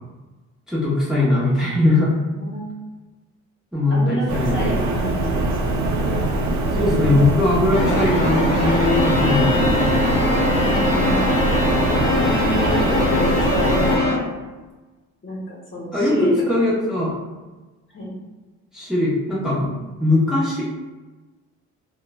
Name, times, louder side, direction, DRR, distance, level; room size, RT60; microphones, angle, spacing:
voice 1, 0.7-2.1 3.7-4.8 6.7-10.0 15.9-17.2 18.7-19.7 20.0-20.6, left 2 dB, ahead, -8 dB, 0.7 m, -20 dB
voice 2, 3.9-5.5 10.6-11.3 12.2-14.3 15.2-16.3 17.9-18.2, equal, 40° left, -4 dB, 0.9 m, -29 dB
sound 1, 4.3-14.0, right 2 dB, 65° right, 0.6 m, -22 dB
sound 2, 7.7-14.2, left 1 dB, 90° left, 0.6 m, -23 dB
Bowed string instrument, 8.6-14.3, left 2 dB, 50° right, 1.0 m, -26 dB
2.9 x 2.1 x 2.2 m, 1.2 s
cardioid pair, 90°, 30 cm